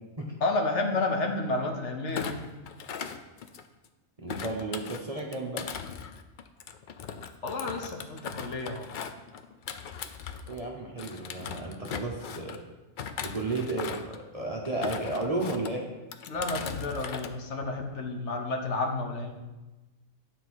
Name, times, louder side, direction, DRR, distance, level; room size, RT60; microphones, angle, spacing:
voice 1, 0.4-2.5 7.4-8.9 11.4-11.5 16.3-19.3, left 2 dB, 60° left, 3 dB, 1.1 m, -31 dB
Thump thud, 2.1-3.9 4.3-10.6 11.0-12.6 13.0-14.2 14.6-15.7 16.1-17.3 17.6-18.0, left 7 dB, 80° left, 0.4 m, -39 dB
voice 2, 4.2-5.7 10.5-12.6 13.2-15.9, right 2 dB, 30° right, -2 dB, 0.8 m, -33 dB
9.4 x 4.0 x 6.2 m, 1.1 s
omnidirectional pair, 1.5 m